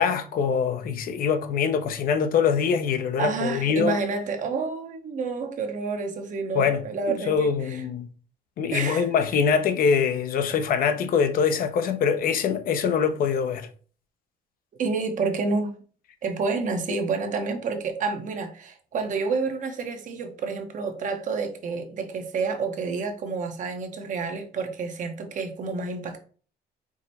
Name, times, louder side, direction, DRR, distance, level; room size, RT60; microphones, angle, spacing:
voice 1, 0.0-4.0 6.5-6.8 7.1-8.1 8.6-13.7, left 6 dB, 60° left, 0.6 m, -23 dB
voice 2, 3.2-7.8 8.7-9.0 14.8-15.7 16.2-26.2, right 4 dB, 50° right, 0.9 m, -29 dB
4.8 x 2.1 x 4.1 m
cardioid pair, 110°, 17 cm